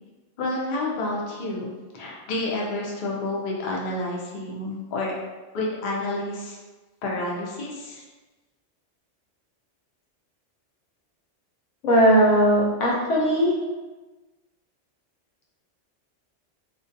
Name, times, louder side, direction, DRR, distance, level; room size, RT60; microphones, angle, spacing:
voice 1, 0.4-1.7 1.9-5.1 5.5-6.6 7.0-8.0, left 2 dB, 55° left, -3 dB, 0.5 m, -29 dB
voice 2, 11.8-13.5, equal, 90° left, -4 dB, 1.0 m, -18 dB
2.3 x 2.2 x 2.6 m, 1.2 s
omnidirectional pair, 1.2 m